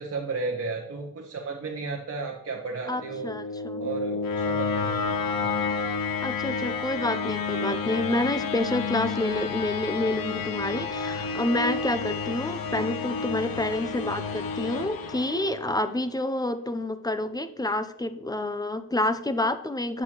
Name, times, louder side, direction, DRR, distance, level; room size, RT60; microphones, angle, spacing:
voice 1, 0.0-3.3 3.8-5.7, right 4 dB, 45° right, 0 dB, 1.0 m, -34 dB
sound 1, 2.9-15.9, left 5 dB, 80° left, 0.9 m, -30 dB
voice 2, 2.9-3.9 6.2-20.0, left 1 dB, 10° left, 11 dB, 0.5 m, -28 dB
8.1 x 7.5 x 2.9 m, 0.83 s
wide cardioid pair, 105°, 34 cm